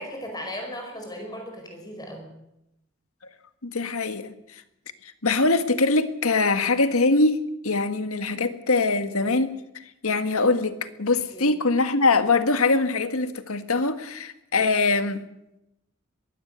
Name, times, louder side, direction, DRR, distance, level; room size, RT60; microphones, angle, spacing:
voice 1, 0.0-2.3 11.3-11.5, equal, 20° left, 2 dB, 5.0 m, -36 dB
voice 2, 3.6-4.3 5.2-9.6 10.0-15.2, left 3 dB, 85° left, 9 dB, 1.7 m, -23 dB
22.0 x 16.0 x 8.1 m, 0.87 s
head